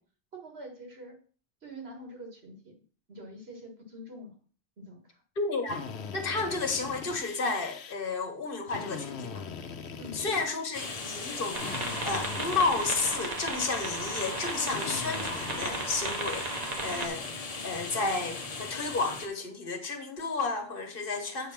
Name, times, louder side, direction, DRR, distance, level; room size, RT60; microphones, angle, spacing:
voice 1, 0.3-1.2 1.6-2.8 3.1-4.3 4.8-5.2 10.0-10.2 16.9-17.1, equal, 70° right, 1.9 m, -45 dB
voice 2, 5.4-5.8 6.1-9.4 10.1-16.5 16.8-17.2 17.6-21.5, left 3 dB, 55° left, 1.2 m, -32 dB
Drill, 5.7-7.9 8.7-10.9 11.6-13.5 14.7-16.1, left 6 dB, 80° left, 1.0 m, -41 dB
sound 1, 10.7-19.3, left 3 dB, 40° left, 0.9 m, -39 dB
sound 2, 11.5-17.1, right 2 dB, 40° right, 1.0 m, -35 dB
8.3 x 3.4 x 5.8 m
omnidirectional pair, 1.1 m